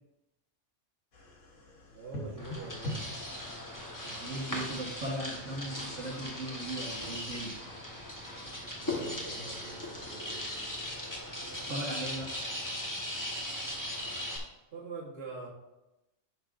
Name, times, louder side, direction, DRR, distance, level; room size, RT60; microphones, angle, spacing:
sound 1, 1.1-12.2, left 1 dB, 90° left, 1.6 m, -48 dB
voice 1, 1.9-3.1 8.8-10.4 14.7-15.5, right 3 dB, 55° right, -4 dB, 1.6 m, -45 dB
sound 2, 2.4-14.4, left 1 dB, 15° left, 1.3 m, -38 dB
voice 2, 4.0-7.6 11.6-12.3, right 1 dB, 80° right, -2 dB, 1.8 m, -38 dB
11.0 x 6.6 x 2.6 m, 0.97 s
omnidirectional pair, 1.3 m